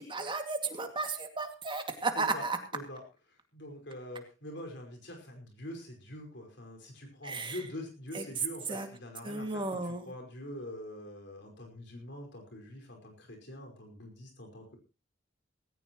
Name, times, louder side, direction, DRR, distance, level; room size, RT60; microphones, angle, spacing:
voice 1, 0.0-2.6 7.2-7.6 8.1-8.2 8.7-8.9 9.2-10.1, right 3 dB, 25° right, 5 dB, 2.3 m, -34 dB
voice 2, 3.3-14.8, left 1 dB, 65° left, 3 dB, 5.2 m, -45 dB
18.5 x 16.5 x 3.1 m, 0.30 s
head